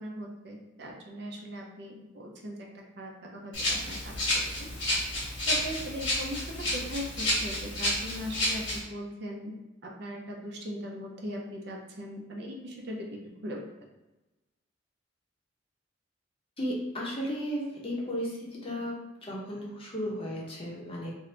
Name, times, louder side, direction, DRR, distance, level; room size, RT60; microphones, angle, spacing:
voice 1, 0.0-2.5 3.0-4.4 5.5-6.4 6.7-9.5 9.8-13.1 13.4-13.6, equal, 60° right, 0 dB, 0.6 m, -39 dB
Rattle (instrument), 3.5-8.8, left 1 dB, 90° left, 1.3 m, -30 dB
voice 2, 16.6-19.0 19.2-21.1, equal, 30° left, -3 dB, 0.7 m, -34 dB
2.7 x 2.5 x 3.2 m, 1.1 s
head